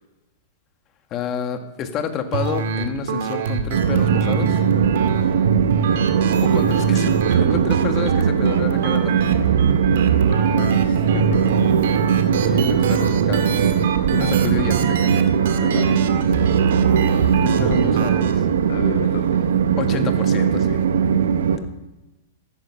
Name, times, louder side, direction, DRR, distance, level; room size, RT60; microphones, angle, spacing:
voice 1, 1.1-4.6 6.5-9.1 12.4-13.5 14.1-15.2 15.6-15.9 17.4-18.5 19.8-20.8, left 7 dB, 30° left, 7 dB, 1.7 m, -29 dB
sound 1, 2.3-18.3, right 6 dB, 70° right, 1.9 m, -25 dB
Train, 3.7-21.6, right 7 dB, 85° right, 1.2 m, -19 dB
voice 2, 10.3-11.4 15.6-16.0 18.7-19.5, left 5 dB, 75° left, 3 dB, 1.9 m, -31 dB
14.5 x 12.5 x 5.8 m, 0.99 s
hypercardioid pair, 135°, 0 cm